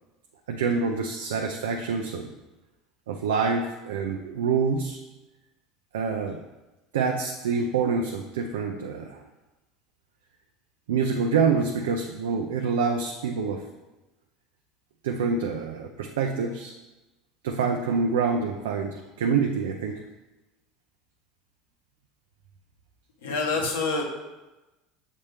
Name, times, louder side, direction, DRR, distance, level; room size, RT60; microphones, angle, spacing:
voice 1, 0.5-2.3 3.1-5.0 5.9-6.4 6.9-9.2 10.9-13.6 15.0-16.7 17.4-20.0, right 5 dB, 85° right, 2 dB, 0.5 m, -26 dB
voice 2, 23.2-24.0, left 3 dB, 85° left, 0 dB, 1.2 m, -26 dB
7.4 x 4.2 x 3.4 m, 1.1 s
hypercardioid pair, 85°, 0 cm